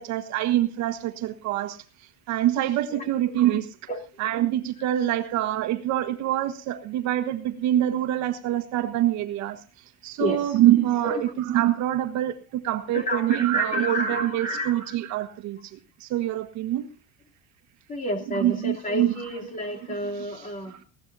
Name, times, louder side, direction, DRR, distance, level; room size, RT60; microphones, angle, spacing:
voice 1, 0.0-1.8 2.3-3.7 4.2-9.6 10.0-11.1 11.5-16.9 18.4-19.1 20.7-20.8, right 13 dB, 55° right, 1.5 m, -25 dB
voice 2, 10.2-10.6 11.0-11.3 12.9-15.0 17.9-20.8, left 1 dB, 25° left, 3.1 m, -30 dB
20.0 x 17.0 x 2.7 m
cardioid pair, 175°, 34 cm